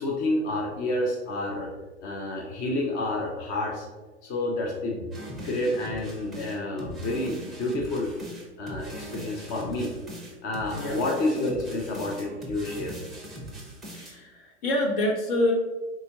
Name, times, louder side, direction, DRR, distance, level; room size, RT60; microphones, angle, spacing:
voice 1, 0.0-1.7 2.0-3.9 4.2-5.1 5.4-8.1 8.6-9.9 10.4-13.0, left 2 dB, 25° left, -1 dB, 0.4 m, -29 dB
sound 1, 5.1-14.1, right 1 dB, ahead, 0.7 m, -41 dB
voice 2, 13.9-15.5, left 1 dB, 55° left, -1 dB, 1.2 m, -26 dB
4.2 x 3.5 x 2.8 m, 1.3 s
hypercardioid pair, 120°, 36 cm